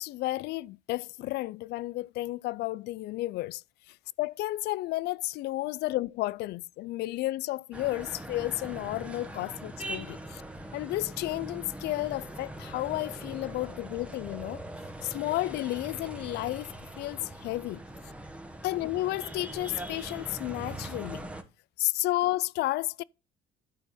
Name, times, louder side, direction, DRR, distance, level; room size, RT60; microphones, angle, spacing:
voice 1, 0.0-3.6 3.9-10.4 10.7-14.6 15.0-16.7 17.0-17.8 18.6-21.3 21.8-23.0, left 17 dB, 75° left, 0.4 m, -32 dB
sound 1, 7.7-21.4, right 1 dB, 5° right, 1.3 m, -42 dB
11.5 x 4.5 x 5.7 m
cardioid pair, 110°, 17 cm